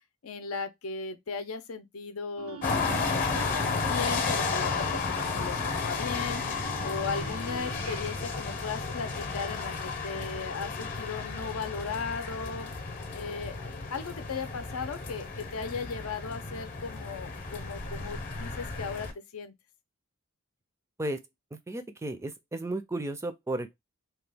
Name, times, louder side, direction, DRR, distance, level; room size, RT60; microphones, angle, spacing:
voice 1, 0.2-12.7 13.1-19.5, left 5 dB, 90° left, 0.6 m, -37 dB
sound 1, 2.4-8.4, right 7 dB, 80° right, 0.4 m, -48 dB
sound 2, 2.6-19.1, left 4 dB, 40° left, 0.7 m, -33 dB
voice 2, 21.5-23.8, right 2 dB, 15° right, 0.4 m, -34 dB
2.9 x 2.3 x 3.3 m
head